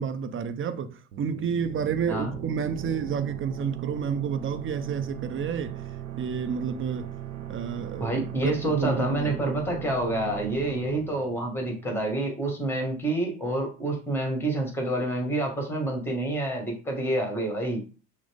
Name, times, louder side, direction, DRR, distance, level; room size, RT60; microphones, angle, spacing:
voice 1, 0.0-5.8 6.2-7.1 7.5-9.4, right 7 dB, 30° right, 0.6 m, -30 dB
sound 1, 1.1-12.5, right 11 dB, 90° right, 0.6 m, -38 dB
voice 2, 8.0-17.8, right 1 dB, 5° left, 1.7 m, -28 dB
6.0 x 2.1 x 3.5 m
hypercardioid pair, 60°, 39 cm